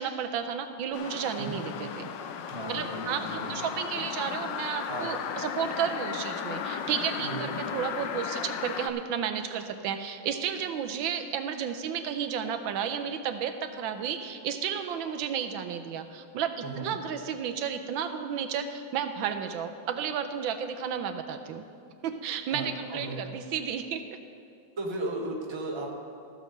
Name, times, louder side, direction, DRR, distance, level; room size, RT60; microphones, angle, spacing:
voice 1, 0.0-2.1 2.7-21.6 22.0-24.0, right 8 dB, 80° right, 8 dB, 1.3 m, -32 dB
sound 1, 0.9-8.9, left 7 dB, 75° left, 1.2 m, -35 dB
voice 2, 2.5-3.6 4.9-5.1 7.2-7.5 16.6-17.0 22.5-23.2 24.8-25.9, right 2 dB, 20° right, 0 dB, 0.8 m, -36 dB
14.5 x 5.1 x 6.5 m, 2.6 s
omnidirectional pair, 2.1 m